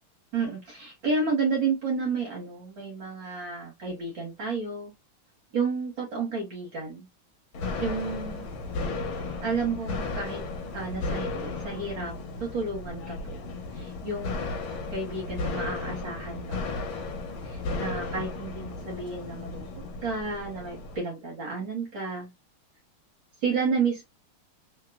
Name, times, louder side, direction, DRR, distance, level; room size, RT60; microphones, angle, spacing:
voice 1, 0.3-4.9 5.5-7.1 7.8-8.5 9.4-10.4 10.7-12.2 12.4-13.4 13.7-14.6 14.9-16.6 17.4-19.7 20.0-22.3 23.4-24.0, right 4 dB, 60° right, 1.7 m, -31 dB
sound 1, 7.5-21.0, left 3 dB, 70° left, 1.4 m, -34 dB
3.4 x 2.9 x 2.2 m
omnidirectional pair, 2.4 m